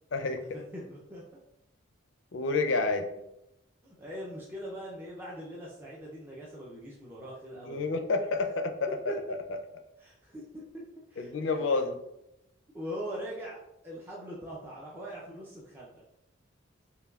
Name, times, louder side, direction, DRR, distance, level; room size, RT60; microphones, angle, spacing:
voice 1, 0.5-1.4 3.8-7.9 9.1-9.4 10.0-10.8 11.1-11.5 12.7-13.6 13.8-16.0, equal, 10° right, -6 dB, 0.5 m, -41 dB
voice 2, 2.3-3.1 7.6-8.9 9.3-9.4 11.2-12.0, left 3 dB, 65° left, 6 dB, 0.5 m, -29 dB
5.4 x 2.2 x 2.3 m, 0.85 s
head